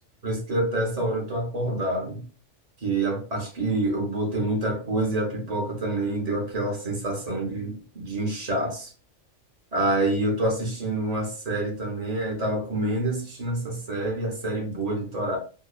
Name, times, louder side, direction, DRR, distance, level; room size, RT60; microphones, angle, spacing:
voice 1, 0.2-2.2 2.8-8.9 9.7-15.4, right 1 dB, 35° right, 0.8 m, -27 dB
2.8 x 2.1 x 2.3 m
omnidirectional pair, 1.3 m